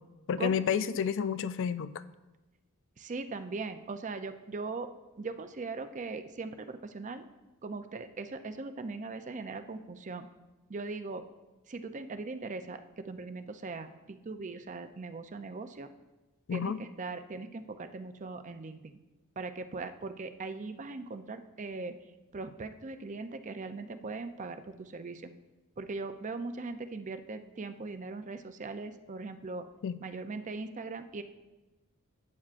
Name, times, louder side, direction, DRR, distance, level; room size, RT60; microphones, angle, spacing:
voice 1, 0.3-2.0 16.5-16.8 29.8-30.0, left 7 dB, 60° left, 14 dB, 0.3 m, -30 dB
voice 2, 3.0-4.9 5.2-7.2 7.6-10.3 10.7-11.3 11.7-15.9 16.5-18.9 19.4-22.0 22.3-25.3 25.8-29.7 30.0-31.2, right 3 dB, 35° right, 9 dB, 0.5 m, -40 dB
12.0 x 8.5 x 2.5 m, 1.1 s
head